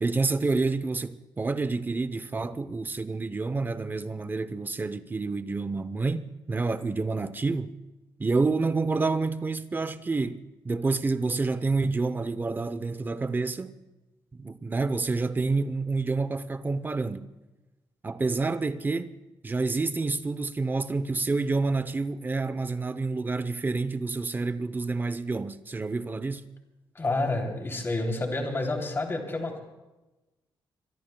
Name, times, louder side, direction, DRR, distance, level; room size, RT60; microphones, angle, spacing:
voice 1, 0.0-7.8 8.2-13.8 14.4-17.3 18.0-19.1 19.4-26.5, right 3 dB, 20° right, 0.7 m, -28 dB
voice 2, 26.9-29.6, left 2 dB, 25° left, 3.0 m, -29 dB
27.0 x 23.5 x 2.3 m
wide cardioid pair, 135°, 9 cm